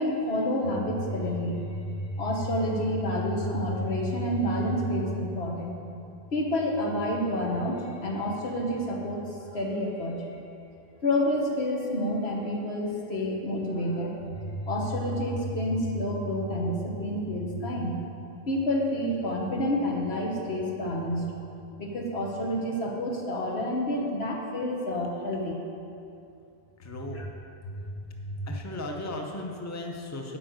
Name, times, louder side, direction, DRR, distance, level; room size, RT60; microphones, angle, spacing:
voice 1, 0.0-5.7 6.3-9.2 9.5-10.4 11.0-17.9 18.5-21.3 21.8-25.6 27.1-27.2 28.2-28.3, left 1 dB, 90° left, -1 dB, 1.6 m, -29 dB
voice 2, 26.8-27.2 28.5-30.4, left 2 dB, 20° left, 2 dB, 0.7 m, -36 dB
8.6 x 5.5 x 7.8 m, 2.7 s
omnidirectional pair, 1.0 m